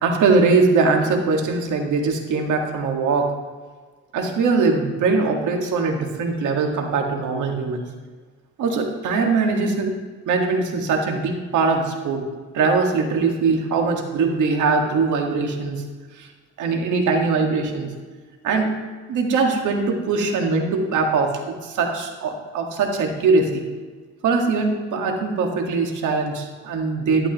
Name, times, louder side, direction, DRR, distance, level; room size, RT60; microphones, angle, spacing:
voice 1, 0.0-3.3 4.1-7.8 8.6-9.9 10.3-12.3 12.5-15.8 16.1-16.3 16.6-17.9 18.4-18.8 19.1-23.6 24.2-27.3, right 4 dB, 80° right, 2 dB, 1.8 m, -21 dB
12.5 x 11.0 x 3.0 m, 1.4 s
cardioid pair, 90°, 30 cm